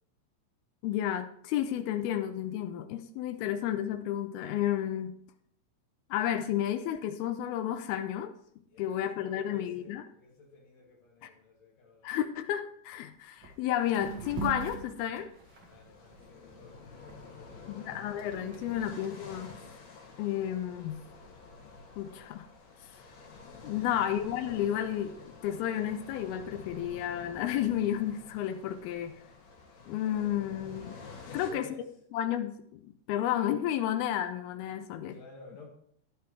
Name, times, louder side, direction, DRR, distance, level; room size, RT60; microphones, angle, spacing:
voice 1, 0.8-5.1 6.1-8.3 8.8-10.0 11.2-11.3 12.0-15.3 17.7-19.6 20.2-21.0 22.0-22.5 23.6-29.1 29.9-31.0 31.3-31.7 32.1-35.2, left 11 dB, 80° left, 2.2 m, -32 dB
voice 2, 8.7-12.2 15.6-18.9 23.7-24.1 31.1-31.9 35.1-35.7, left 3 dB, 45° left, 2.8 m, -53 dB
sound 1, 12.9-13.0 13.4-13.6 13.9-16.6 17.1-19.6, right 5 dB, 45° right, 1.6 m, -42 dB
sound 2, 15.4-31.5, left 4 dB, 60° left, 3.4 m, -49 dB
12.5 x 10.5 x 3.3 m
omnidirectional pair, 5.1 m